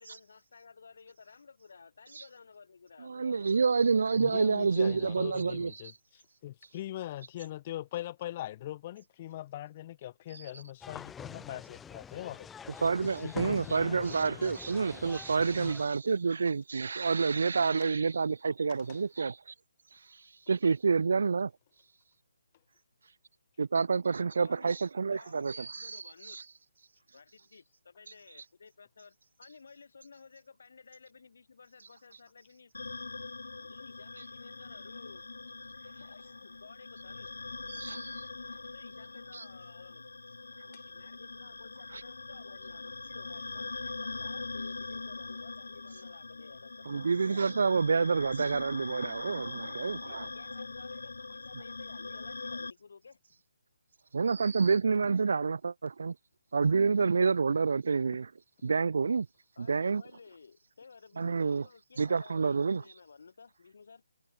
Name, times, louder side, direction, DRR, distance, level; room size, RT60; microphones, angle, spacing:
voice 1, 0.0-3.7 24.4-24.8 25.0-26.4 27.1-32.7 33.6-35.2 36.0-37.3 38.7-40.0 40.8-46.9 50.0-53.2 59.5-64.0, left 5 dB, 55° left, 6.5 m, -54 dB
voice 2, 3.0-5.7 12.8-19.3 20.5-21.5 23.6-26.4 37.7-38.2 39.3-39.4 46.9-50.2 54.1-56.1 56.5-58.3 58.6-59.3 59.6-60.0 61.2-61.6 62.0-62.8, right 5 dB, 60° right, 0.4 m, -28 dB
voice 3, 4.2-12.5 13.0-14.5 15.6-15.7 17.8-17.9 18.7-19.0 40.7-40.9, left 13 dB, 25° left, 0.6 m, -42 dB
sound 1, 10.8-15.9, left 7 dB, 5° left, 1.2 m, -46 dB
sound 2, 32.7-52.7, left 3 dB, 80° left, 1.7 m, -42 dB
hypercardioid pair, 170°, 0 cm